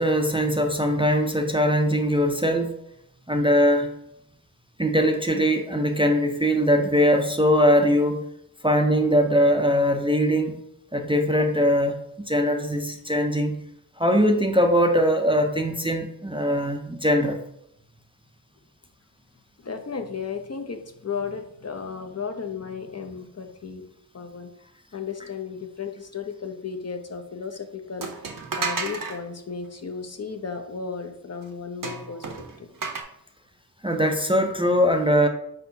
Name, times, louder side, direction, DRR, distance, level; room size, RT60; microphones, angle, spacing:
voice 1, 0.0-2.7 3.3-3.9 4.8-8.2 8.6-10.5 10.9-12.0 12.3-13.6 14.0-17.4 33.8-35.3, equal, 15° right, 4 dB, 0.4 m, -21 dB
voice 2, 19.6-23.8 24.1-32.7, left 5 dB, 45° left, 6 dB, 0.5 m, -35 dB
sound 1, 28.0-29.2 31.8-33.0, right 4 dB, 60° right, 0.7 m, -31 dB
4.6 x 4.2 x 2.6 m, 0.80 s
wide cardioid pair, 60°, 38 cm